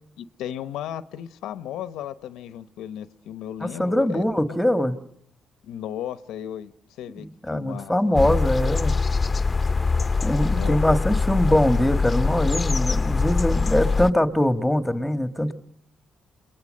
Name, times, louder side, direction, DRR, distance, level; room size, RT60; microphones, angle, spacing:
voice 1, 0.2-4.6 5.6-8.2 10.4-11.0, left 10 dB, 85° left, 0.9 m, -35 dB
voice 2, 3.6-5.0 7.2-8.9 10.2-15.5, left 1 dB, 5° left, 1.6 m, -22 dB
sound 1, 8.1-14.1, left 4 dB, 25° left, 0.9 m, -23 dB
29.0 x 21.5 x 6.5 m
cardioid pair, 90°, 0 cm